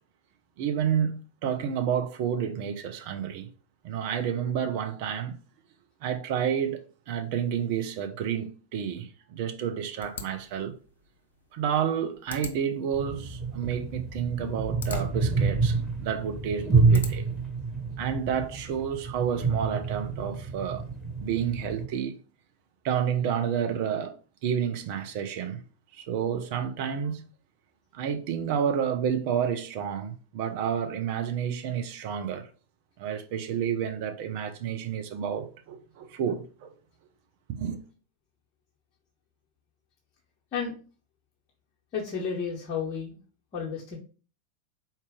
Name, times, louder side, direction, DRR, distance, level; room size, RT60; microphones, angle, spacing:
voice 1, 0.6-3.5 3.8-5.4 6.0-6.8 7.1-10.8 11.5-17.3 18.0-20.9 21.2-22.2 22.8-25.6 25.9-27.2 27.9-32.5 33.0-36.7 37.5-37.8, right 8 dB, 45° right, 0.6 m, -30 dB
sound 1, 10.0-17.5, left 4 dB, 65° left, 0.6 m, -43 dB
sound 2, 12.9-21.8, right 4 dB, ahead, 1.3 m, -28 dB
voice 2, 41.9-43.2 43.5-44.0, left 6 dB, 35° left, 1.0 m, -32 dB
4.1 x 2.4 x 3.6 m
figure-of-eight pair, 90°, 0 cm